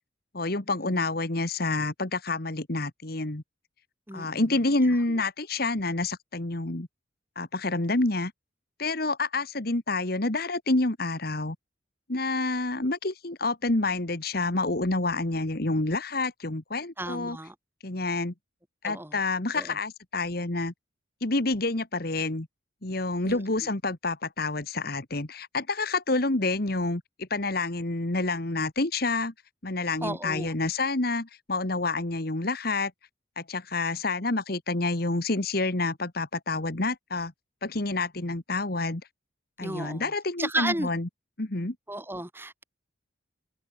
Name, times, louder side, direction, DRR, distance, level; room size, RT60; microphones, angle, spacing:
voice 1, 0.3-3.4 4.1-6.9 7.4-8.3 8.8-11.6 12.1-17.4 17.8-18.3 18.8-20.7 21.2-22.5 22.8-29.3 29.6-32.9 33.4-37.3 37.6-39.0 39.6-41.1 41.4-41.8, left 2 dB, 50° left, 1.6 m, -28 dB
voice 2, 17.0-17.5 18.8-19.2 19.5-19.8 23.3-23.4 30.0-30.5 39.6-40.1 40.4-40.9 41.9-42.6, right 1 dB, 10° right, 6.2 m, -33 dB
head